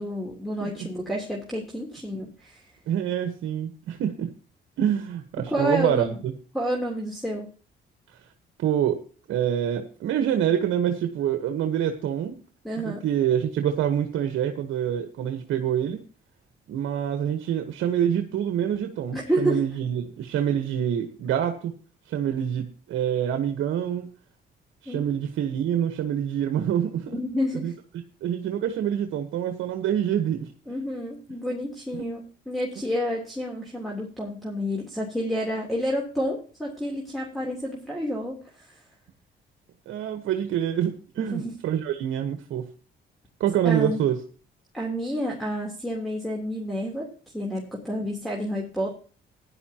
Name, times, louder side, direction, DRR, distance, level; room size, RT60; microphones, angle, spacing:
voice 1, 0.0-2.6 5.5-6.2 6.5-7.5 12.6-13.1 19.1-19.6 24.8-25.0 27.1-27.8 30.7-32.2 32.5-38.8 41.2-41.5 43.6-44.0 44.7-49.0, equal, ahead, -1 dB, 3.3 m, -29 dB
voice 2, 2.9-4.3 4.8-6.3 8.6-9.0 9.3-12.4 12.7-16.0 16.7-21.7 22.1-24.1 24.8-27.2 27.6-27.7 28.2-30.5 32.0-32.1 39.9-42.7 43.4-44.2, right 9 dB, 80° right, 7 dB, 1.3 m, -26 dB
15.5 x 11.0 x 2.9 m, 0.37 s
cardioid pair, 90°, 20 cm